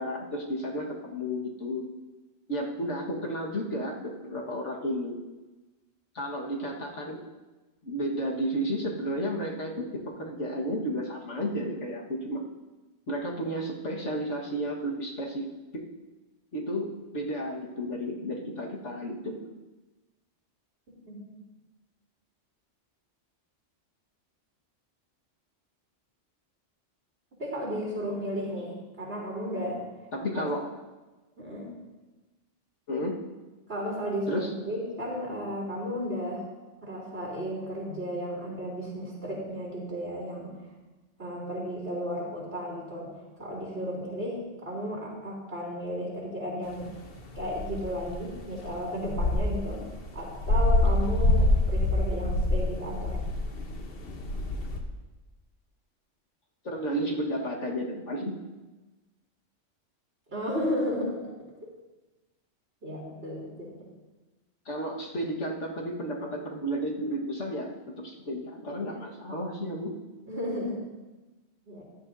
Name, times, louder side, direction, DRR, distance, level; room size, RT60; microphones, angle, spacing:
voice 1, 0.0-1.8 2.5-5.2 6.2-7.2 7.8-12.4 13.1-15.5 15.7-15.8 16.5-19.4 30.1-30.7 32.9-33.2 34.3-34.5 56.6-58.4 64.7-67.7 68.0-69.9, equal, 75° left, -1 dB, 2.0 m, -32 dB
voice 2, 27.4-29.8 30.3-30.4 31.4-31.7 33.7-36.4 36.8-40.5 41.2-46.9 47.3-49.9 50.1-53.2 60.3-61.2 62.8-63.8 70.3-70.8 71.7-71.8, equal, 55° right, -3 dB, 3.8 m, -34 dB
sound 1, 46.7-54.8, left 1 dB, 55° left, 1.2 m, -26 dB
14.0 x 12.0 x 2.7 m, 1.2 s
omnidirectional pair, 1.2 m